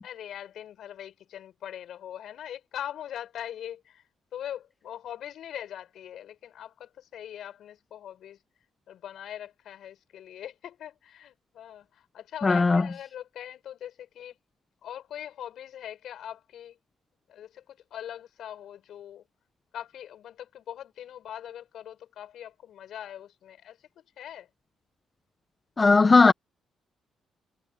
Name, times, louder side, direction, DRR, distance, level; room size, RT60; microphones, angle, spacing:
voice 1, 0.0-4.0 4.3-8.4 8.9-14.4 14.8-16.8 17.3-19.2 19.7-24.5, left 10 dB, 70° left, 7.8 m, -41 dB
voice 2, 12.4-12.9 25.8-26.3, left 4 dB, 25° left, 1.3 m, -18 dB
cardioid pair, 90°, 0 cm